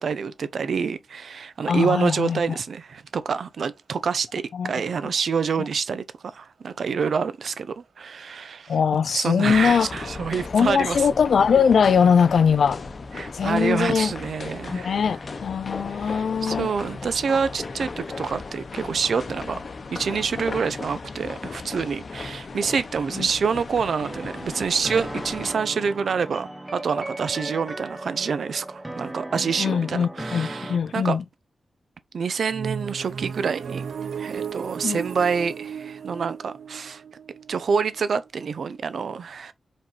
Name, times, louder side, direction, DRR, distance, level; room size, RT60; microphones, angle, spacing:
voice 1, 0.0-8.8 9.1-11.1 13.2-15.0 15.9-19.6 19.9-31.2 32.1-33.9 34.2-37.0 37.5-39.5, right 6 dB, 75° right, 0.8 m, -27 dB
voice 2, 1.7-2.6 4.5-4.7 8.7-9.9 10.5-12.8 13.3-14.1 14.7-16.7 23.1-23.3 29.4-31.2 34.8-35.0, left 6 dB, 85° left, 0.5 m, -21 dB
sound 1, 9.5-25.5, left 4 dB, 45° left, 0.8 m, -36 dB
sound 2, 24.1-30.8, right 1 dB, 15° right, 1.0 m, -36 dB
sound 3, 32.5-38.3, right 7 dB, 90° right, 0.4 m, -35 dB
5.5 x 5.3 x 4.2 m
wide cardioid pair, 160°, 0 cm